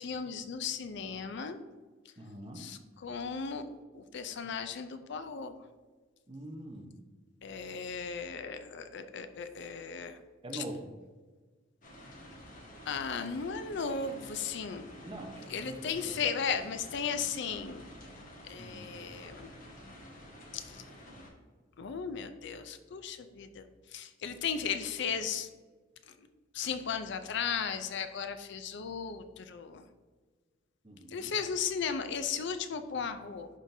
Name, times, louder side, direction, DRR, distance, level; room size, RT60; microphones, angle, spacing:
voice 1, 0.0-1.6 2.6-5.5 7.4-10.2 10.5-10.6 12.9-14.9 15.5-17.8 18.4-19.5 20.5-20.8 21.8-25.5 26.1-26.3 26.5-29.9 31.1-33.5, left 6 dB, 60° left, 9 dB, 0.5 m, -36 dB
voice 2, 2.2-2.7 6.3-7.0 10.4-10.9 15.0-16.3 18.6-19.0 30.8-31.3, right 1 dB, 25° right, 3 dB, 0.8 m, -44 dB
sound 1, 11.8-21.3, equal, 45° left, 1.3 m, -50 dB
11.0 x 3.8 x 2.7 m, 1.4 s
head